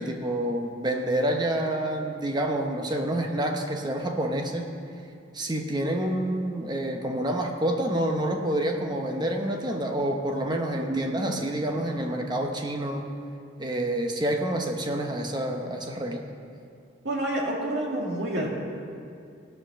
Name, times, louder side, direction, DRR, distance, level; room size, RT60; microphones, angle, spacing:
voice 1, 0.0-4.7 5.3-13.0 13.6-16.2, right 1 dB, 20° right, 3 dB, 0.9 m, -28 dB
voice 2, 10.7-11.3 17.0-18.5, right 1 dB, 55° right, -3 dB, 2.2 m, -29 dB
15.5 x 6.7 x 6.2 m, 2.4 s
head